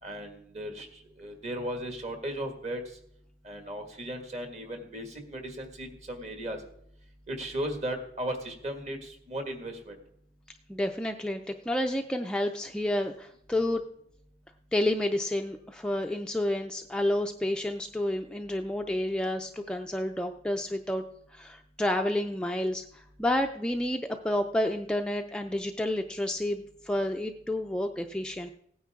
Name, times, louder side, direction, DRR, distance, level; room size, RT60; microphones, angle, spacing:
voice 1, 0.0-3.0 3.4-6.6 7.3-10.0, right 1 dB, 40° right, 4 dB, 1.8 m, -36 dB
voice 2, 10.7-13.8 14.7-21.0 21.3-28.5, left 1 dB, 5° left, 3 dB, 0.4 m, -30 dB
16.5 x 9.6 x 3.6 m, 0.71 s
head